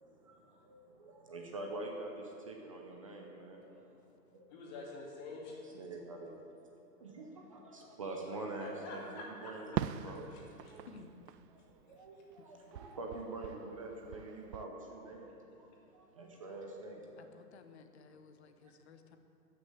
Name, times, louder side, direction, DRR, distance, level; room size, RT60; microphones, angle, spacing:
voice 1, 0.0-3.8 5.7-6.7 7.0-10.3 10.7-10.9 11.7-15.3 15.6-17.3 18.1-18.2, right 2 dB, 20° right, 1 dB, 0.6 m, -45 dB
voice 2, 4.5-5.6 8.5-9.5 10.3-10.7 12.1-12.2, left 2 dB, 25° left, -2 dB, 2.2 m, -48 dB
Fireworks, 9.8-12.4 12.7-14.6, right 10 dB, 85° right, 0.6 m, -42 dB
voice 3, 17.2-19.2, left 5 dB, 40° left, 8 dB, 1.0 m, -56 dB
13.0 x 6.4 x 8.1 m, 2.9 s
hypercardioid pair, 160°, 48 cm